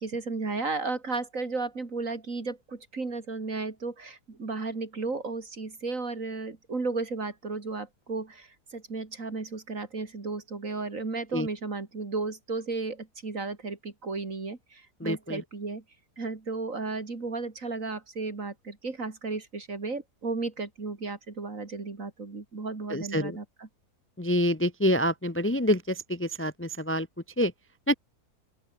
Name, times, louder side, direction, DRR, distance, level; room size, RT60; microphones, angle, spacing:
voice 1, 0.0-15.8 16.2-23.7, right 3 dB, 50° right, 3.4 m, -34 dB
voice 2, 15.0-15.4 22.9-23.4 24.2-27.1 27.4-27.5 27.9-28.0, equal, 10° left, 1.0 m, -26 dB
open air
omnidirectional pair, 1.7 m